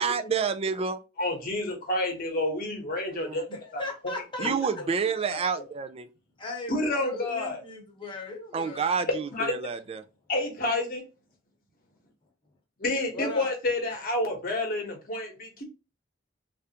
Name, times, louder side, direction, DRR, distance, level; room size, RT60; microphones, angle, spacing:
voice 1, 0.0-1.0 3.1-3.4 4.4-6.1 8.5-10.0, right 5 dB, 30° right, 0.3 m, -29 dB
voice 2, 1.2-3.5 3.7-4.9 5.3-5.4 6.7-7.6 9.3-9.5 10.3-11.0 12.8-15.6, left 2 dB, 50° left, 1.0 m, -29 dB
voice 3, 3.5-4.7 6.4-8.8 13.1-13.5, left 2 dB, 25° left, 1.0 m, -37 dB
3.3 x 2.5 x 2.8 m
head